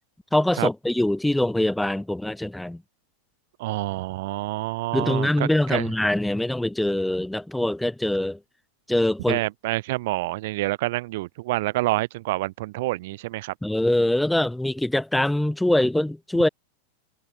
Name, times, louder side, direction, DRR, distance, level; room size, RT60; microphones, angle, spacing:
voice 1, 0.3-2.8 4.9-8.4 8.9-9.4 13.6-16.5, left 1 dB, 5° left, 2.1 m, -23 dB
voice 2, 3.6-5.9 9.3-13.5, right 19 dB, 50° right, 2.2 m, -27 dB
figure-of-eight pair, 90°, 0 cm